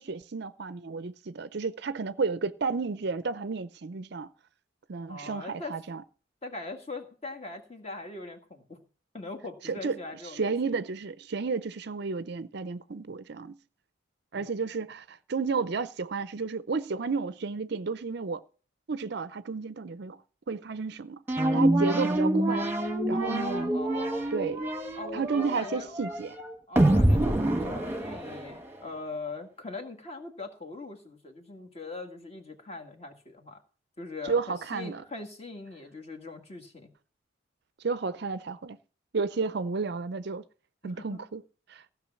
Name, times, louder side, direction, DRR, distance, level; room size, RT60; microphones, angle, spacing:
voice 1, 0.0-4.3 4.9-6.0 9.6-10.0 10.3-13.6 14.3-18.4 18.9-20.2 20.5-21.2 21.5-22.7 23.1-23.7 24.3-24.6 25.1-26.4 34.2-35.0 37.8-38.8 39.1-40.4 40.8-41.4 41.7-41.8, right 4 dB, 55° right, 0.5 m, -32 dB
voice 2, 5.1-5.8 6.4-8.8 9.1-10.5 14.3-14.6 23.1-24.3 24.9-26.0 26.7-33.6 34.0-36.9 40.8-41.2, left 2 dB, 30° left, 1.8 m, -41 dB
sound 1, 21.3-28.8, right 1 dB, 10° right, 1.4 m, -26 dB
15.5 x 5.9 x 7.1 m
head